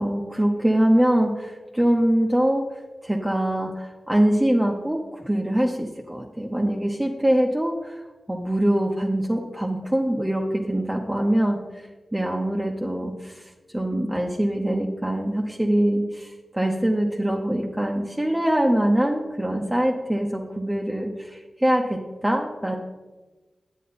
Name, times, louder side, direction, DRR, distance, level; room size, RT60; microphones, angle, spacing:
voice 1, 0.0-22.8, right 1 dB, 10° right, 0 dB, 1.1 m, -23 dB
9.2 x 8.2 x 4.3 m, 1.2 s
cardioid pair, 40°, 0 cm